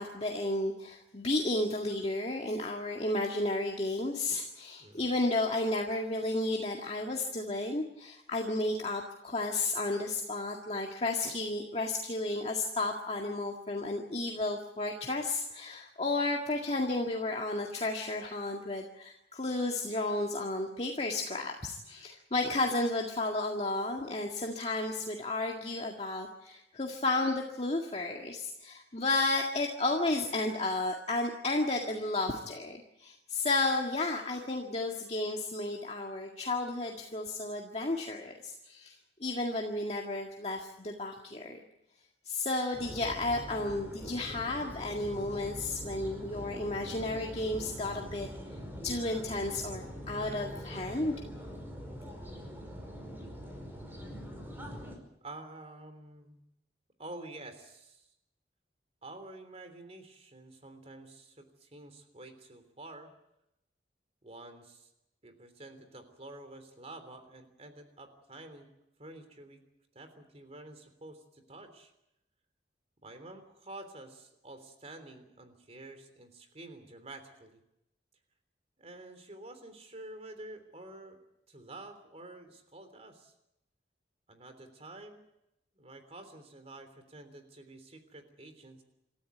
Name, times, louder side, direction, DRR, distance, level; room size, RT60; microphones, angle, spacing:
voice 1, 0.0-39.0 39.2-41.6 42.3-48.3 48.8-51.1, left 2 dB, 35° left, 1 dB, 1.9 m, -32 dB
sound 1, 42.7-55.0, equal, 10° right, 5.2 m, -43 dB
voice 2, 55.2-56.4 57.0-58.1 59.0-63.1 64.2-64.9 65.2-68.7 69.0-69.6 69.9-71.9 73.0-77.6 78.8-83.3 84.3-85.2 85.7-88.8, right 2 dB, 35° right, 8 dB, 3.3 m, -49 dB
27.5 x 14.0 x 9.1 m, 0.85 s
head